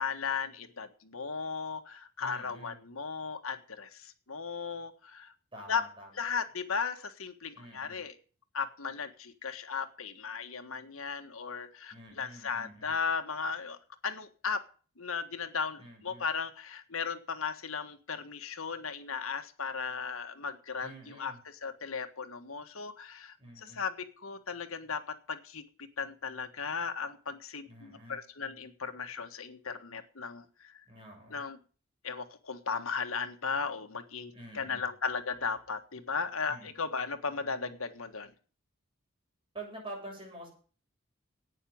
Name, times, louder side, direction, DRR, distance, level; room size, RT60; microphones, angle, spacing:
voice 1, 0.0-5.3 5.7-5.9 6.1-8.2 8.5-13.8 14.0-14.6 15.0-25.6 26.0-30.7 31.3-31.6 32.0-38.3, left 5 dB, 75° left, 7 dB, 1.6 m, -36 dB
voice 2, 2.2-2.8 5.5-6.1 7.5-8.0 11.9-12.9 15.8-16.2 20.8-21.4 23.4-23.8 27.7-28.2 30.8-31.5 34.3-34.9 36.5-36.7 39.5-40.5, right 2 dB, 25° right, 0 dB, 7.6 m, -47 dB
11.0 x 9.2 x 8.7 m, 0.40 s
head